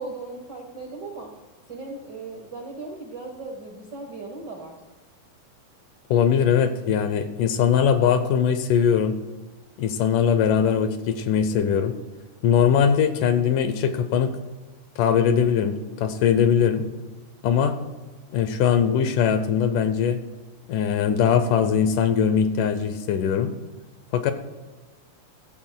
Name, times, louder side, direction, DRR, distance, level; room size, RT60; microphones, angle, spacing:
voice 1, 0.0-1.3 1.7-4.8, right 3 dB, 70° right, 1 dB, 1.0 m, -37 dB
voice 2, 6.1-9.2 9.8-12.0 12.4-14.3 15.0-16.9 17.4-17.7 18.3-20.2 20.7-23.5 24.1-24.3, left 7 dB, 75° left, 9 dB, 2.1 m, -21 dB
15.5 x 14.5 x 2.2 m, 1.2 s
omnidirectional pair, 4.0 m